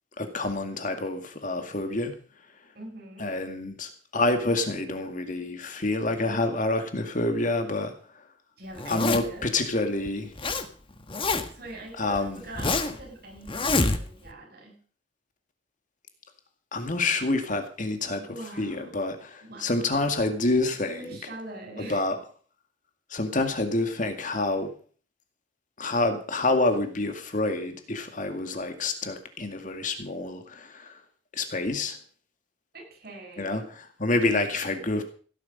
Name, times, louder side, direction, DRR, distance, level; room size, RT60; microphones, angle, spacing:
voice 1, 0.2-2.1 3.2-7.9 8.9-10.3 12.0-12.4 16.7-18.2 18.6-21.2 21.8-22.2 23.1-24.7 25.8-31.0 31.3-32.0 33.4-35.0, left 2 dB, 45° left, 6 dB, 2.1 m, -27 dB
voice 2, 2.7-3.3 8.6-9.5 11.5-14.8 18.1-19.0 19.4-19.9 21.0-22.0 23.3-23.5 32.7-33.7, right 2 dB, 55° right, 1 dB, 7.5 m, -43 dB
Zipper (clothing), 8.8-9.5 10.1-10.7 10.9-11.7 12.1-13.0 13.5-14.3, left 3 dB, 30° left, 1.4 m, -26 dB
16.5 x 11.5 x 5.4 m, 0.43 s
head